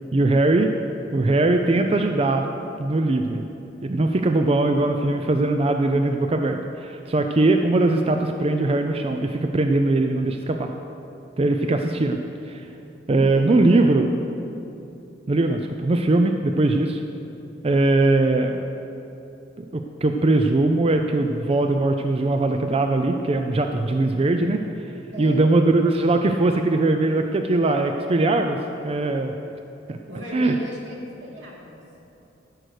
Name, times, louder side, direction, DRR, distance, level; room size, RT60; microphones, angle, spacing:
voice 1, 0.1-0.7 1.1-2.4 2.8-3.4 3.8-10.7 11.4-12.2 12.5-12.6 13.1-14.1 15.3-17.0 17.6-18.6 19.6-24.6 25.2-28.6 28.8-29.3 29.9-30.0 30.3-30.5, right 2 dB, 30° right, 5 dB, 0.4 m, -20 dB
voice 2, 13.1-14.0 25.1-25.5 30.1-31.8, equal, 80° right, -2 dB, 2.4 m, -37 dB
14.5 x 6.5 x 6.4 m, 2.9 s
head